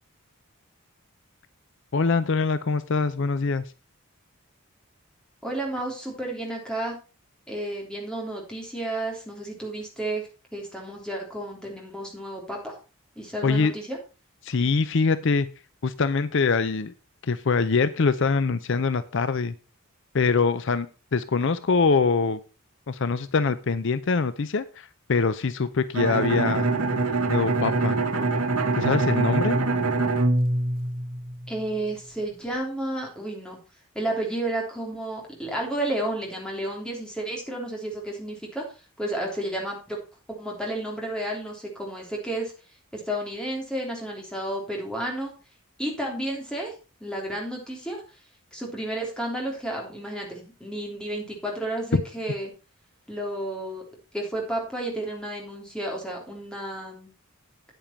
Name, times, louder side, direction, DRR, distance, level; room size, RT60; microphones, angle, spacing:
voice 1, 1.9-3.6 13.4-13.7 14.4-15.5 15.8-16.9 17.2-19.5 20.1-20.9 21.1-22.4 22.9-26.7 27.3-28.0 28.8-29.6 51.9-52.0, left 4 dB, 55° left, 14 dB, 0.5 m, -23 dB
voice 2, 5.4-7.0 7.5-12.8 13.1-14.0 31.5-33.6 33.9-38.6 39.0-40.0 40.3-42.5 42.9-45.3 45.8-46.7 47.0-48.0 48.5-52.5 53.1-53.8 54.1-57.1, right 1 dB, 5° left, -1 dB, 3.2 m, -32 dB
Bowed string instrument, 25.9-31.6, right 3 dB, 80° right, 1.3 m, -24 dB
8.9 x 8.9 x 4.4 m, 0.32 s
head